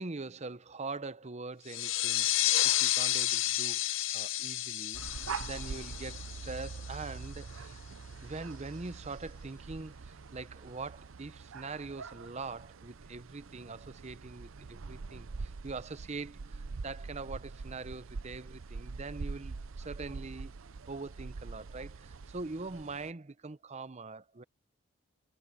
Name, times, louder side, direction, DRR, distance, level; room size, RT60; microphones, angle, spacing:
voice 1, 0.0-3.8 4.1-7.8 8.2-20.5 20.9-24.4, right 3 dB, 35° right, 0.7 m, -43 dB
sound 1, 1.7-7.0, left 14 dB, 70° left, 0.7 m, -31 dB
sound 2, 4.9-23.1, right 4 dB, 80° right, 0.6 m, -44 dB
head